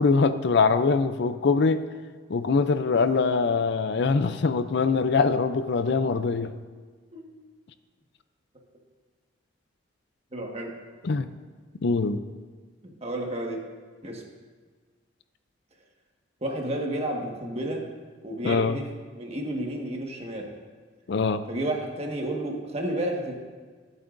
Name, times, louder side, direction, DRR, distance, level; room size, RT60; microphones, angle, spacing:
voice 1, 0.0-1.9 2.3-6.5 11.0-11.3 11.8-12.2 18.4-18.8 21.1-21.4, left 4 dB, 60° left, 12 dB, 0.4 m, -23 dB
voice 2, 10.3-10.7 12.8-13.6 14.0-14.2 16.4-17.9 18.2-18.9 19.1-20.5 21.5-23.3, right 1 dB, 35° right, 0 dB, 1.5 m, -31 dB
22.5 x 8.3 x 2.6 m, 1.5 s
head